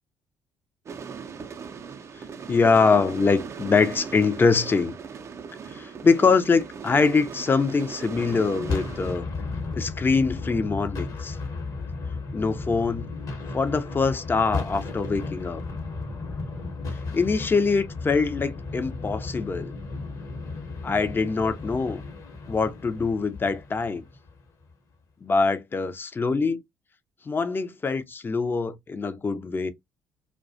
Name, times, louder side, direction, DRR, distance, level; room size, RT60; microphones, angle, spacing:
sound 1, 0.9-9.2, right 6 dB, 40° right, 0.4 m, -39 dB
voice 1, 2.5-5.0 5.7-9.3 9.7-11.4 12.3-13.1 13.5-15.6 17.1-19.7 20.8-22.0 22.5-24.0 25.2-26.6 27.3-29.7, left 4 dB, 25° left, 0.5 m, -23 dB
sound 2, 8.1-24.5, left 3 dB, 50° left, 0.9 m, -34 dB
2.3 x 2.2 x 2.5 m
hypercardioid pair, 50°, 8 cm